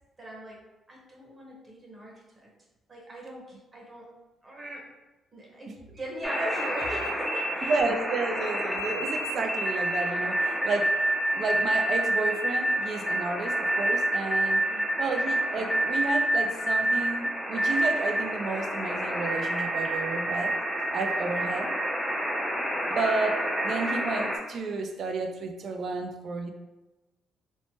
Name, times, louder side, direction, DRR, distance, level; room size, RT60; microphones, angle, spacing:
voice 1, 0.2-0.6 0.9-2.5 2.9-4.1 4.4-4.9 5.3-7.8 10.2-10.3 14.7-15.0 22.8-23.0, right 1 dB, 35° right, -3 dB, 1.0 m, -40 dB
sound 1, 6.2-24.4, right 1 dB, ahead, 0.5 m, -28 dB
voice 2, 7.6-11.0 11.3-14.6 15.0-20.5 20.9-21.8 22.9-26.5, right 3 dB, 60° right, 5 dB, 0.3 m, -31 dB
3.0 x 2.1 x 2.8 m, 1.1 s
cardioid pair, 90°, 0 cm